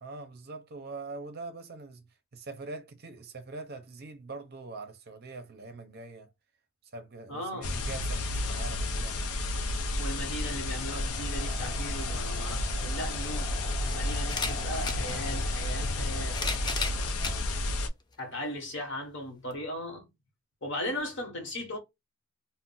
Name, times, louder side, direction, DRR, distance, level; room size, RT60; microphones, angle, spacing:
voice 1, 0.0-6.3 6.9-9.2 17.1-17.5, right 3 dB, 45° right, 0.6 m, -43 dB
voice 2, 7.3-7.7 10.0-13.5 13.8-16.4 18.2-20.1 20.6-21.8, left 1 dB, 55° left, 1.1 m, -37 dB
sound 1, 7.6-17.9, left 2 dB, 75° left, 0.5 m, -31 dB
sound 2, 10.7-17.1, equal, ahead, 0.8 m, -46 dB
sound 3, 12.8-12.9 14.2-15.0 16.0-17.4 18.1-18.2 19.5-19.6, left 4 dB, 20° left, 0.3 m, -34 dB
2.4 x 2.1 x 3.8 m
head